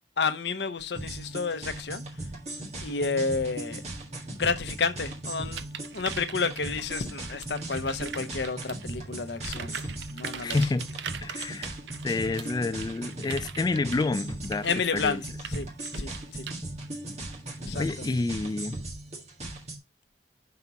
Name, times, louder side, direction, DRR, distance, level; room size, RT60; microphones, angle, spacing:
voice 1, 0.2-2.0 2.8-3.8 4.4-5.7 5.9-9.8 10.1-10.6 14.6-15.2 15.5-15.7 15.9-16.4 17.6-17.8, left 4 dB, 70° left, 0.8 m, -30 dB
sound 1, 0.9-19.8, right 1 dB, 40° right, 1.8 m, -38 dB
sound 2, 5.5-8.9 9.3-16.5, right 7 dB, 80° right, 0.5 m, -41 dB
voice 2, 10.4-10.9 11.2-11.7 12.0-14.7 14.9-15.2 17.7-18.8, left 3 dB, 25° left, 0.3 m, -28 dB
5.9 x 4.0 x 5.8 m
head